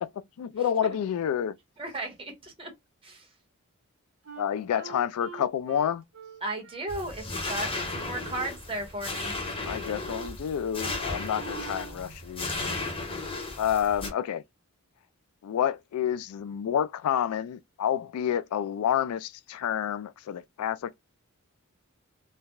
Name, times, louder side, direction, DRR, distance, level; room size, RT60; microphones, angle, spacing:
voice 1, 0.4-1.5 4.4-6.0 9.6-12.9 13.6-14.4 15.4-20.9, left 9 dB, 80° left, 0.3 m, -29 dB
voice 2, 1.8-2.7 3.0-3.3 6.4-9.3, right 2 dB, 25° right, 1.2 m, -35 dB
Wind instrument woodwind instrument, 4.2-7.7 8.1-8.4 8.7-9.3 9.6-10.4 10.7-11.0 11.3-12.0, right 4 dB, 80° right, 1.0 m, -45 dB
sound 1, 6.9-14.1, left 3 dB, 25° left, 0.9 m, -35 dB
3.3 x 2.1 x 2.3 m
head